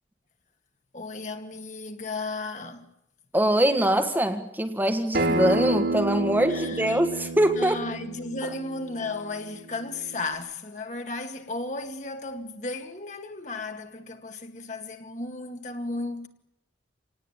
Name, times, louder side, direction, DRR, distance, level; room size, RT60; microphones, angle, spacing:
voice 1, 0.9-2.8 6.5-7.0 7.5-16.3, left 3 dB, 40° left, 2.2 m, -34 dB
voice 2, 3.3-7.8, right 1 dB, 10° right, 1.7 m, -23 dB
Acoustic guitar, 5.1-10.3, right 2 dB, 60° right, 3.5 m, -30 dB
27.0 x 19.0 x 9.0 m
head